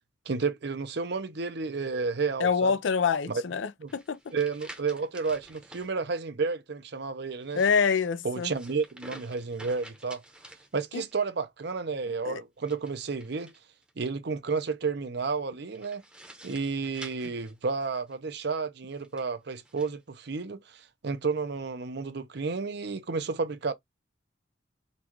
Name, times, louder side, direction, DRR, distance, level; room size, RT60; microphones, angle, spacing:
voice 1, 0.3-2.7 3.8-3.9 4.3-7.6 8.2-10.2 10.7-13.5 14.0-16.0 16.4-23.7, right 4 dB, 60° right, 0.6 m, -31 dB
voice 2, 2.4-4.2 7.6-8.5 10.9-11.0 12.3-12.4, left 6 dB, 75° left, 0.4 m, -26 dB
sound 1, 3.9-5.9 7.3-11.2 12.6-13.9 15.7-18.2 18.9-19.9, right 1 dB, 5° right, 0.8 m, -50 dB
3.9 x 2.3 x 3.0 m
head